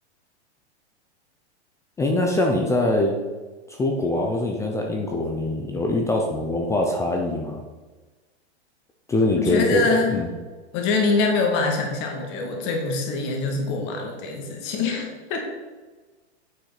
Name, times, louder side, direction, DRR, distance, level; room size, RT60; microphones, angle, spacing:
voice 1, 2.0-3.1 3.7-7.6 9.1-10.3, left 2 dB, 10° left, 1 dB, 0.6 m, -23 dB
voice 2, 9.3-10.2 10.7-15.4, left 3 dB, 35° left, 2 dB, 2.1 m, -24 dB
9.0 x 6.0 x 5.8 m, 1.3 s
hypercardioid pair, 150°, 34 cm